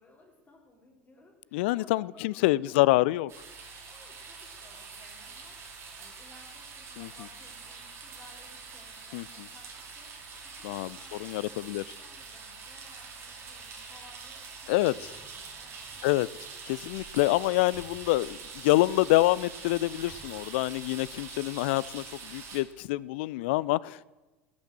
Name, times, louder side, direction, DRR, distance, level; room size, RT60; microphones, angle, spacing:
voice 1, 0.0-10.1 10.4-15.1 15.3-16.1, left 2 dB, 25° left, 3.3 m, -59 dB
voice 2, 1.5-3.3 7.0-7.1 9.1-9.2 10.6-11.8 14.7-14.9 16.0-16.3 16.6-24.0, left 18 dB, 55° left, 0.3 m, -26 dB
sound 1, 3.3-22.6, right 5 dB, 35° right, 2.5 m, -45 dB
19.5 x 6.9 x 6.3 m
figure-of-eight pair, 75°, 7 cm